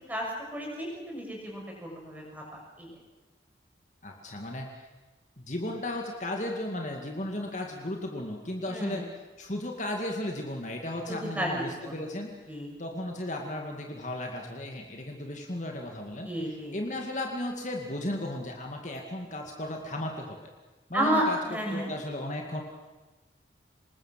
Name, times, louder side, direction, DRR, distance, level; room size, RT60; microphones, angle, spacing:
voice 1, 0.5-2.9 8.7-9.0 11.1-11.9 12.5-12.8 16.2-16.7 20.9-21.9, equal, 10° right, -2 dB, 6.3 m, -32 dB
voice 2, 4.0-4.9 5.4-9.0 9.4-12.3 12.8-20.5 20.9-21.4 21.7-22.6, left 1 dB, 40° left, 1 dB, 2.2 m, -35 dB
26.0 x 20.5 x 7.6 m, 1.2 s
head